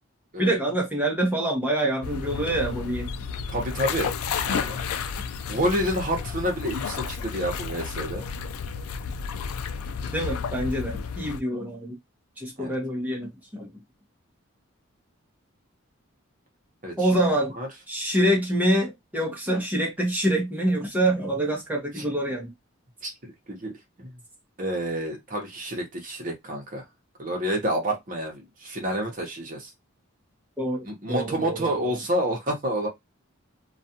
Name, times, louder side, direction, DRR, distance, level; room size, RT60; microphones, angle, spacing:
voice 1, 0.4-3.1 10.1-12.0 12.4-13.7 17.0-17.5 17.9-22.5 30.6-31.9, right 1 dB, 5° right, 0.7 m, -26 dB
sound 1, 2.0-11.4, left 6 dB, 90° left, 0.3 m, -32 dB
voice 2, 3.5-4.1 4.5-4.8 5.5-8.2 12.6-12.7 16.8-17.2 17.6-17.7 22.0-22.1 23.0-23.7 24.0-24.1 24.6-26.8 27.2-29.7 30.8-32.9, equal, 40° right, 0.9 m, -29 dB
2.4 x 2.3 x 2.7 m
head